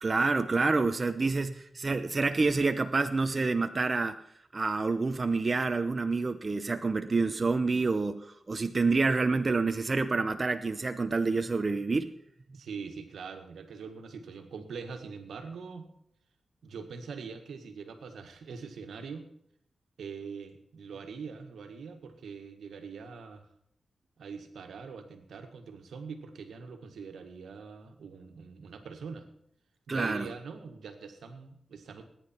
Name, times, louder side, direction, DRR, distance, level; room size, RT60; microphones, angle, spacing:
voice 1, 0.0-4.2 4.5-12.1 29.9-30.3, right 3 dB, 45° right, 10 dB, 0.8 m, -28 dB
voice 2, 12.5-15.9 16.6-19.3 20.0-23.5 24.2-29.3 29.9-32.1, right 5 dB, 90° right, 6 dB, 1.7 m, -43 dB
20.0 x 10.0 x 4.5 m, 0.72 s
cardioid pair, 55°, 0 cm